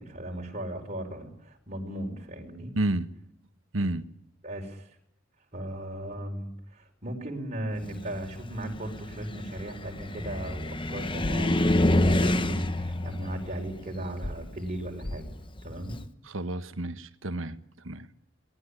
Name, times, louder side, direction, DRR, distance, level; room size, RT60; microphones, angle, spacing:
voice 1, 0.0-2.7 4.4-5.0 5.5-15.3 15.6-16.0, right 1 dB, 35° right, 1 dB, 4.9 m, -37 dB
voice 2, 2.7-3.1 3.7-4.0 16.3-17.6 17.8-18.1, right 2 dB, 85° right, 11 dB, 1.5 m, -30 dB
Car, 7.8-16.0, left 1 dB, 25° left, 1.1 m, -28 dB
sound 1, 11.2-11.3 12.0-12.2 14.2-14.3 15.0-15.2, left 1 dB, 80° left, 3.1 m, -33 dB
24.0 x 18.5 x 9.9 m, 0.77 s
head